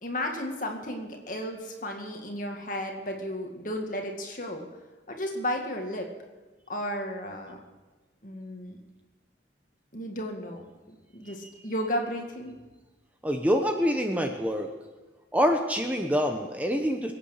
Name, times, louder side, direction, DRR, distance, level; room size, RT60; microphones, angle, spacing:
voice 1, 0.0-4.7 5.1-6.1 6.7-7.6 8.2-8.8 9.9-12.6, equal, 45° left, 2 dB, 2.2 m, -34 dB
voice 2, 13.2-14.7 15.3-17.1, equal, 10° right, 4 dB, 0.9 m, -26 dB
22.0 x 8.8 x 6.6 m, 1.2 s
head